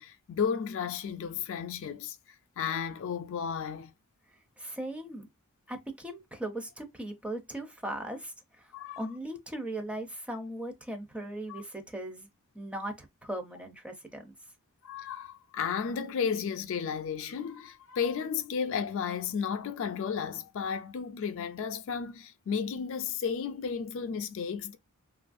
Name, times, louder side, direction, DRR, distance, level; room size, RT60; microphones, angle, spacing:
voice 1, 0.0-3.9 8.7-9.0 11.5-11.6 14.8-24.8, left 6 dB, 60° left, 0.3 m, -33 dB
voice 2, 4.6-5.3 5.7-12.3 12.5-14.3, right 1 dB, 5° right, 0.4 m, -38 dB
2.9 x 2.3 x 2.5 m
head